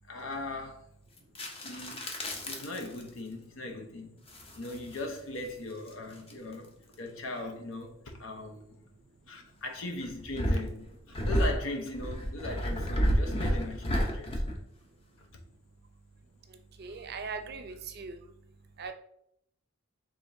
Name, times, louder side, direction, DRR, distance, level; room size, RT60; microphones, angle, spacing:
voice 1, 0.1-0.8 1.6-2.0 2.4-4.2 4.5-8.8 9.3-14.4 16.9-17.0, left 2 dB, 75° left, 0.8 m, -39 dB
sound 1, 1.2-3.1 4.3-5.1 5.9-6.5 10.0-14.6, equal, 30° left, 0.6 m, -31 dB
voice 2, 16.8-18.1 18.8-18.9, right 5 dB, 50° right, 0.5 m, -39 dB
5.1 x 3.4 x 2.6 m
head